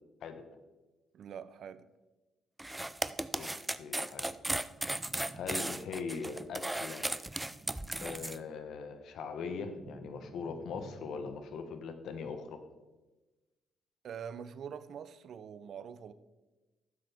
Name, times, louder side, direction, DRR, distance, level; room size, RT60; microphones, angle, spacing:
voice 1, 1.1-1.9 14.0-16.1, right 7 dB, 65° right, 0.6 m, -44 dB
sound 1, 2.6-8.4, right 1 dB, 10° right, 0.4 m, -36 dB
voice 2, 3.3-4.3 5.3-7.1 8.0-12.6, left 5 dB, 75° left, 1.1 m, -41 dB
sound 2, 4.7-6.3 7.3-8.7 9.1-11.5, right 2 dB, 25° right, 0.9 m, -53 dB
12.5 x 7.6 x 3.6 m
cardioid pair, 90°, 0 cm